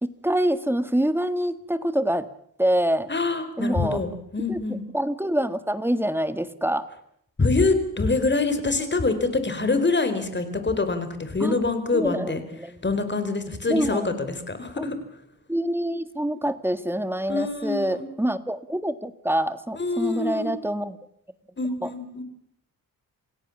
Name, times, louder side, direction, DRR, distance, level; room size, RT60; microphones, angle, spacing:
voice 1, 0.0-2.3 2.6-3.1 3.6-4.0 4.5-4.6 4.9-6.9 11.4-11.6 11.9-12.8 13.7-14.1 14.8-14.9 15.5-21.0 21.8-21.9, right 1 dB, 5° right, 13 dB, 1.6 m, -26 dB
voice 2, 3.1-4.8 7.4-12.4 12.8-15.0 17.3-18.1 19.7-20.5 21.6-22.2, left 3 dB, 30° left, 10 dB, 4.2 m, -25 dB
28.0 x 17.0 x 7.2 m, 0.70 s
wide cardioid pair, 105°, 35 cm